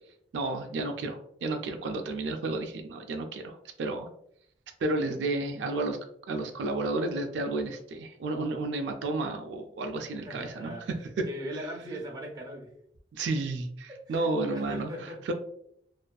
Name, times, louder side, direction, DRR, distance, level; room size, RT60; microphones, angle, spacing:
voice 1, 0.3-4.1 4.8-6.0 6.3-10.7 13.1-14.9 15.3-15.4, right 2 dB, 80° right, 5 dB, 0.3 m, -31 dB
voice 2, 10.2-10.9 11.2-12.7 13.9-15.2, equal, 20° right, -1 dB, 0.5 m, -40 dB
2.4 x 2.3 x 2.2 m, 0.68 s
head